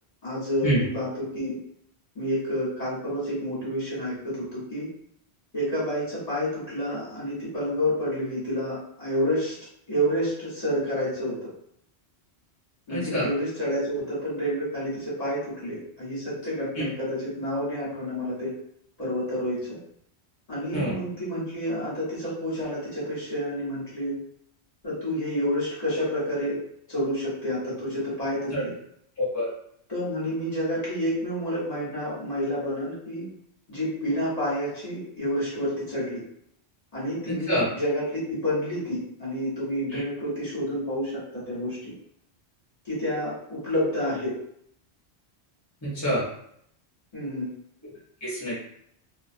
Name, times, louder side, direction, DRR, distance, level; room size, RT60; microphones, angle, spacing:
voice 1, 0.2-1.5 2.1-4.9 5.5-9.5 9.9-11.5 12.9-18.5 19.0-19.8 20.5-24.2 24.8-26.6 26.9-28.7 29.9-33.3 33.7-36.2 36.9-41.9 42.8-44.3 47.1-47.5, equal, 40° left, -9 dB, 1.2 m, -29 dB
voice 2, 12.9-13.3 20.7-20.9 28.5-28.6 29.2-29.5 37.3-37.7 39.9-40.0 45.8-46.2 48.2-48.5, equal, 20° left, -8 dB, 0.8 m, -26 dB
2.3 x 2.1 x 2.5 m, 0.69 s
omnidirectional pair, 1.1 m